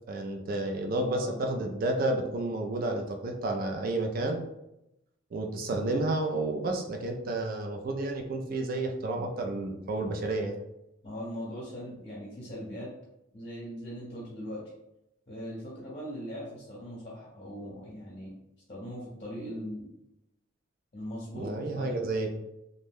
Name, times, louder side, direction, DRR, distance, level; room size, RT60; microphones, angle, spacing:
voice 1, 0.1-4.4 5.3-10.6 21.3-22.3, right 2 dB, 45° right, 2 dB, 0.3 m, -31 dB
voice 2, 0.9-1.4 11.0-12.9 13.3-14.6 15.3-18.3 18.7-19.9 20.9-22.0, equal, 35° left, -5 dB, 0.7 m, -40 dB
2.6 x 2.1 x 3.4 m, 0.87 s
head